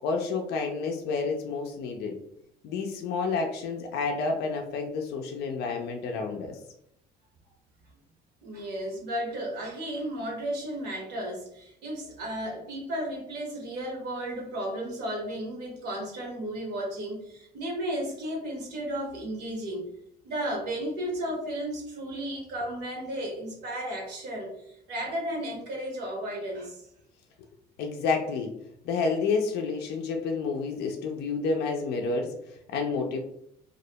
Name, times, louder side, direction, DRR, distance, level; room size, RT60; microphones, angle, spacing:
voice 1, 0.0-2.1 2.6-6.6 27.8-28.5 28.8-33.2, left 4 dB, 75° left, 2 dB, 0.4 m, -29 dB
voice 2, 8.4-19.9 20.2-26.8, right 1 dB, 80° right, -1 dB, 1.0 m, -34 dB
2.4 x 2.1 x 2.7 m, 0.74 s
cardioid pair, 110°, 17 cm